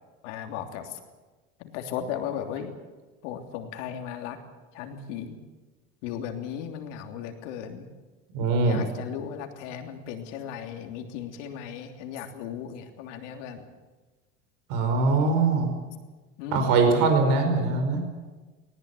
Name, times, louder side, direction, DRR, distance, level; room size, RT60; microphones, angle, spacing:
voice 1, 0.2-1.0 1.6-2.7 3.2-4.4 4.7-5.4 6.0-7.9 8.6-13.6 16.4-16.7, left 8 dB, 75° left, 5 dB, 3.2 m, -36 dB
voice 2, 8.3-8.8 14.7-15.7 16.5-18.0, right 4 dB, 65° right, 5 dB, 5.3 m, -22 dB
19.5 x 19.0 x 9.8 m, 1.3 s
hypercardioid pair, 90°, 36 cm